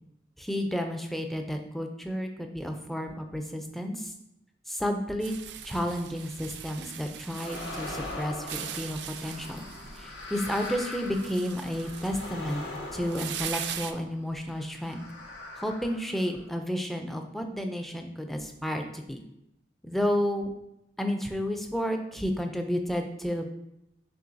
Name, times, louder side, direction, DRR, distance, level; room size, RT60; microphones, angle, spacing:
voice 1, 0.4-4.1 4.7-5.3 5.6-9.7 10.0-12.6 12.9-15.0 15.6-19.2 19.8-20.5 21.0-23.5, equal, ahead, 4 dB, 0.3 m, -31 dB
sound 1, 5.2-13.9, right 9 dB, 80° right, 0.4 m, -41 dB
sound 2, 7.3-14.1 14.7-16.6, left 2 dB, 85° left, 0.9 m, -41 dB
6.7 x 3.1 x 2.6 m, 0.83 s
head